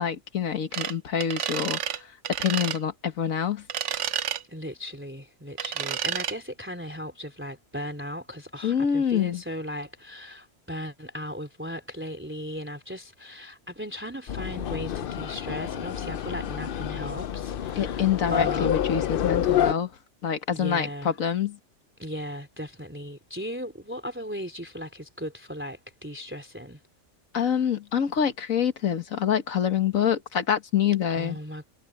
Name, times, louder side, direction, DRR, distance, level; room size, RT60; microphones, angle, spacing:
voice 1, 0.0-2.1 2.4-3.6 8.6-9.4 17.7-19.9 20.2-21.6 27.3-31.4, left 8 dB, 75° left, 1.8 m, -26 dB
sound 1, 0.7-0.9 1.2-2.0 2.2-2.8 3.7-4.4 5.6-6.3, right 9 dB, 65° right, 1.0 m, -30 dB
voice 2, 4.5-18.7 20.5-21.1 22.0-26.8 31.1-31.7, equal, 10° right, 3.4 m, -37 dB
sound 2, 14.3-19.7, left 10 dB, 55° left, 0.6 m, -28 dB
omnidirectional pair, 1.4 m